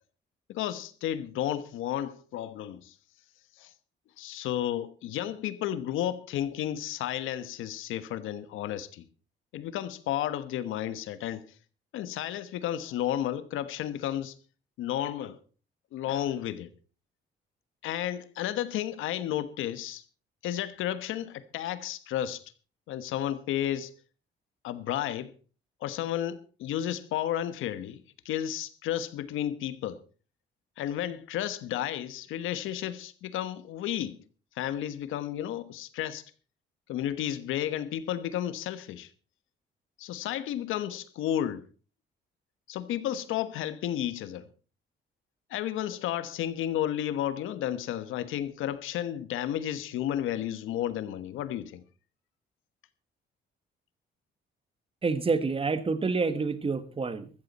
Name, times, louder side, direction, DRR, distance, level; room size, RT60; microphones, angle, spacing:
voice 1, 0.5-2.9 3.6-3.7 4.2-9.0 9.5-11.5 11.9-14.3 14.8-15.4 15.9-16.7 17.8-20.0 20.4-22.4 22.9-23.9 24.6-25.3 25.8-28.0 28.2-30.0 30.8-34.2 34.5-36.3 36.9-39.1 40.0-41.7 42.7-44.5 45.5-51.8, left 11 dB, 90° left, 1.2 m, -32 dB
voice 2, 55.0-57.3, right 4 dB, 30° right, 1.4 m, -28 dB
14.0 x 14.0 x 4.2 m
cardioid pair, 90°, 20 cm